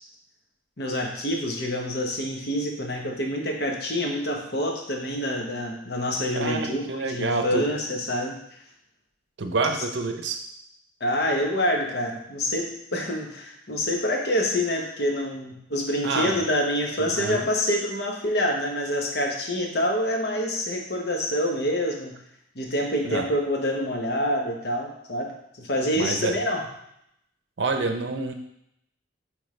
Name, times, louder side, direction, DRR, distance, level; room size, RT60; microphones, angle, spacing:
voice 1, 0.8-6.8 7.1-8.3 11.0-12.7 12.9-22.2 22.5-25.3 25.6-26.6, equal, 60° left, 1 dB, 1.1 m, -26 dB
voice 2, 6.3-7.7 9.4-10.4 16.0-16.4 17.0-17.5 23.0-23.3 25.9-26.4 27.6-28.3, right 3 dB, 70° right, 6 dB, 0.6 m, -27 dB
8.8 x 3.5 x 3.2 m, 0.78 s
head